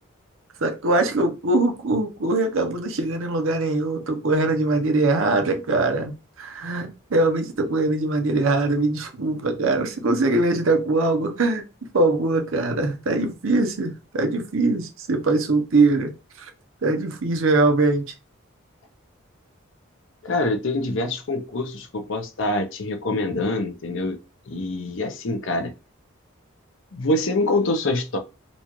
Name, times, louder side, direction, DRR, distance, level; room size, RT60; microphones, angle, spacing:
voice 1, 0.6-11.6 11.9-16.1 16.4-16.5 16.8-18.1, right 2 dB, 75° right, 0.7 m, -22 dB
voice 2, 20.2-24.2 24.5-25.7 26.9-28.2, left 2 dB, 65° left, 0.6 m, -25 dB
4.0 x 2.4 x 3.0 m
head